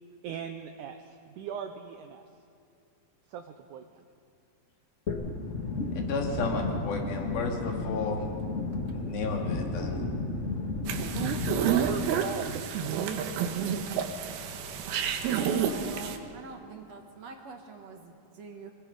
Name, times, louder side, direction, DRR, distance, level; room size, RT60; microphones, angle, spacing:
voice 1, 0.2-2.2 3.3-4.0 10.8-14.1, right 8 dB, 75° right, 5 dB, 2.0 m, -38 dB
sound 1, 5.1-12.0, left 3 dB, 60° left, 0.8 m, -33 dB
voice 2, 6.0-8.3 8.9-10.1, left 3 dB, 80° left, 1 dB, 4.1 m, -33 dB
sound 2, 10.9-16.2, right 7 dB, 90° right, 3.1 m, -30 dB
voice 3, 15.2-18.7, right 4 dB, 55° right, 3 dB, 2.1 m, -45 dB
25.0 x 20.5 x 5.5 m, 2.5 s
omnidirectional pair, 4.2 m